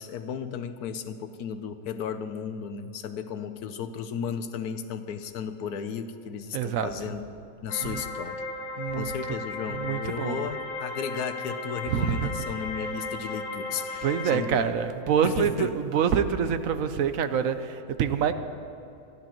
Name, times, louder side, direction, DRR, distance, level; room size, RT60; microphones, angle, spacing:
voice 1, 0.0-7.2 7.6-8.4 8.9-14.7 15.2-15.7, left 7 dB, 80° left, 10 dB, 1.3 m, -34 dB
voice 2, 6.5-6.9 7.8-8.0 8.8-9.1 9.7-10.5 11.9-12.3 14.0-18.3, right 8 dB, 70° right, 10 dB, 1.0 m, -26 dB
sound 1, 7.7-14.4, left 2 dB, 45° left, 1.2 m, -35 dB
22.0 x 15.0 x 3.0 m, 2.8 s
omnidirectional pair, 1.6 m